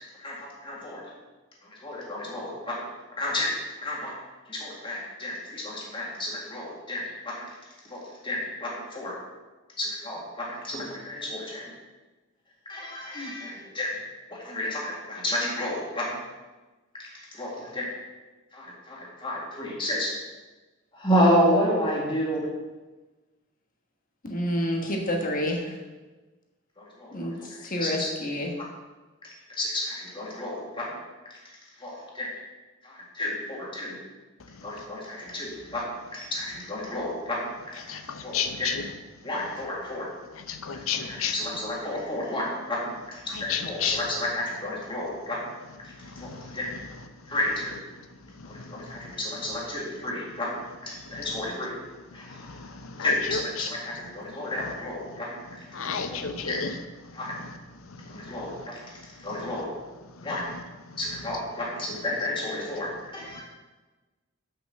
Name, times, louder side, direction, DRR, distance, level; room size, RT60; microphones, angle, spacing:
voice 1, 0.2-1.0 1.6-2.9 3.2-3.5 3.8-4.1 4.5-7.4 7.8-9.2 9.8-11.7 12.7-13.9 14.3-16.2 16.9-17.9 18.5-20.1 20.9-22.5 26.8-27.3 27.8-28.1 29.2-31.0 31.8-32.3 32.8-34.0 34.6-37.8 38.2-38.7 39.2-40.1 40.6-45.5 45.8-46.7 47.3-47.8 48.4-51.7 52.1-52.5 53.0-55.4 56.1-56.6 57.1-57.3 58.1-58.8 59.2-59.7 60.2-60.5 61.0-63.4, left 1 dB, 25° left, -3 dB, 2.0 m, -31 dB
voice 2, 24.2-25.7 27.1-28.5, equal, 40° left, 1 dB, 1.4 m, -29 dB
voice 3, 37.9-38.8 40.5-41.3 43.3-44.0 46.1-46.6 48.6-48.8 52.4-53.7 55.7-56.7 57.4-57.5 58.3-58.6, left 7 dB, 90° left, 9 dB, 0.7 m, -32 dB
5.9 x 5.8 x 6.6 m, 1.2 s
head